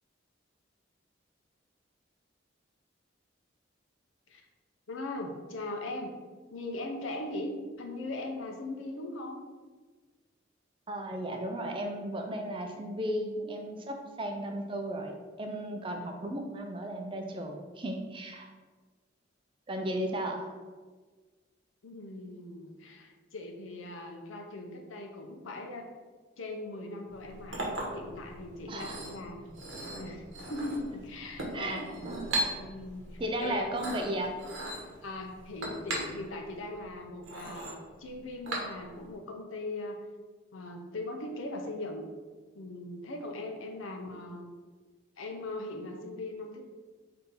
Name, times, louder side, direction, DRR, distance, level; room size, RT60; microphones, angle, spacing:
voice 1, 4.9-6.1 6.5-7.5 7.8-9.4 21.8-25.9 26.4-27.6 27.9-29.5 29.9-31.9 32.5-33.7 35.0-40.0 40.5-42.1 42.5-44.5 45.2-46.6, left 2 dB, 85° left, 3 dB, 0.6 m, -39 dB
voice 2, 10.9-18.5 19.7-20.5 28.7-29.0 31.5-32.5 33.2-34.4 44.0-44.2, right 1 dB, 25° right, 3 dB, 0.4 m, -35 dB
Chink clink, 27.1-39.1, right 1 dB, 80° right, 0.9 m, -39 dB
3.7 x 2.8 x 3.9 m, 1.4 s
head